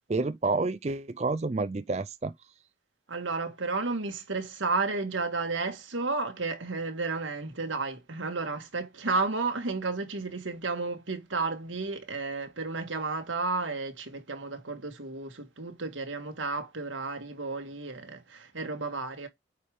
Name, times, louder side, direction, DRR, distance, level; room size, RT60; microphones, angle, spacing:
voice 1, 0.1-2.3, right 3 dB, 35° right, 0.4 m, -29 dB
voice 2, 3.1-19.3, right 3 dB, 90° right, 1.8 m, -32 dB
8.5 x 4.8 x 3.6 m
head